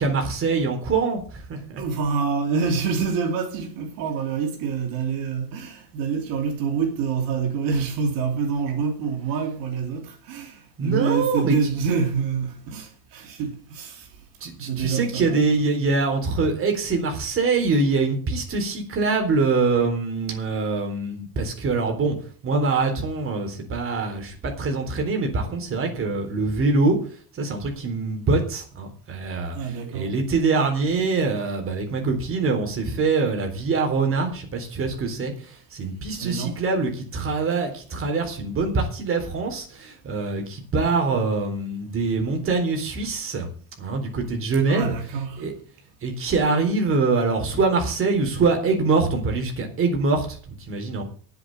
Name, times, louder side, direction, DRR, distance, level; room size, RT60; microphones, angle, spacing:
voice 1, 0.0-1.8 10.8-11.5 14.4-22.1 22.4-27.0 27.4-29.6 29.9-43.5 43.8-44.9 45.4-45.5 46.0-51.0, right 3 dB, 35° right, 4.0 m, -24 dB
voice 2, 1.8-14.1 14.6-15.5 29.5-30.2 36.2-36.6 44.7-45.5, right 6 dB, 75° right, 2.9 m, -26 dB
9.6 x 8.1 x 8.9 m
cardioid pair, 125°, 35 cm